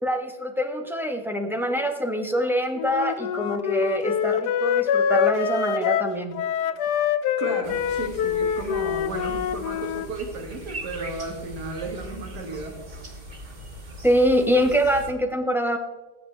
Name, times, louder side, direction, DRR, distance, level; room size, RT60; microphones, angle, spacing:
voice 1, 0.0-6.4 14.0-15.8, equal, ahead, 4 dB, 0.8 m, -24 dB
Wind instrument woodwind instrument, 2.8-10.1, left 8 dB, 90° left, 1.2 m, -25 dB
voice 2, 7.4-12.8, right 3 dB, 85° right, 2 dB, 2.1 m, -34 dB
sound 1, 7.6-15.1, right 1 dB, 30° right, 1.4 m, -40 dB
19.5 x 7.8 x 3.3 m, 1.2 s
omnidirectional pair, 1.7 m